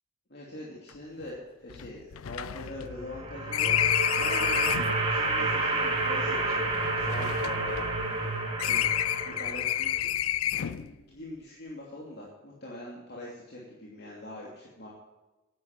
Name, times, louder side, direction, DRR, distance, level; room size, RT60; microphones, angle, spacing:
voice 1, 0.3-4.7 5.1-8.3 8.6-8.9 9.2-14.9, left 1 dB, 50° left, -4 dB, 2.7 m, -43 dB
sound 1, 0.9-1.0 1.2-1.3 1.7-5.0 5.8-8.3 8.6-10.9, left 12 dB, 85° left, 0.4 m, -30 dB
sound 2, 2.9-10.0, right 2 dB, 25° right, 2.3 m, -30 dB
11.0 x 10.5 x 6.5 m, 1.1 s
head